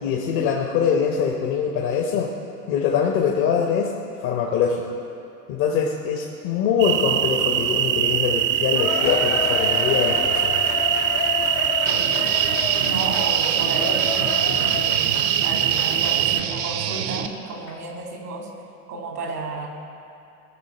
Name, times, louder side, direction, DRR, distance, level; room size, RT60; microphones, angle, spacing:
voice 1, 0.0-2.3 2.7-3.9 4.2-4.9 5.5-10.6, left 7 dB, 50° left, 1 dB, 1.2 m, -23 dB
sound 1, 6.8-16.4, right 10 dB, 25° right, 0.5 m, -22 dB
Cheering, 8.8-16.5 16.9-17.0 17.7-17.8, left 8 dB, 30° left, 0.6 m, -30 dB
Guitar, 11.9-17.3, right 9 dB, 50° right, 0.8 m, -28 dB
voice 2, 12.8-18.5 18.9-19.7, right 3 dB, 80° right, 1 dB, 2.0 m, -32 dB
18.0 x 6.7 x 4.3 m, 2.7 s
figure-of-eight pair, 75°, 46 cm